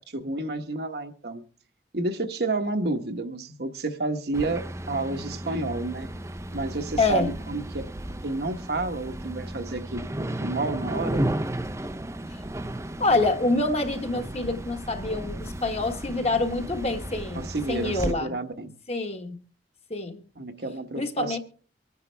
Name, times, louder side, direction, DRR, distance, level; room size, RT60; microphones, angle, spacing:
voice 1, 0.1-1.4 1.9-6.1 6.5-7.8 8.2-11.2 17.3-18.7 20.4-21.4, right 2 dB, 60° right, 1.2 m, -30 dB
sound 1, 4.3-18.1, right 1 dB, 15° right, 0.6 m, -34 dB
voice 2, 7.0-7.3 13.0-18.3 18.9-19.4 19.9-20.2 21.0-21.4, left 2 dB, 35° left, 1.4 m, -26 dB
25.0 x 9.7 x 3.4 m
head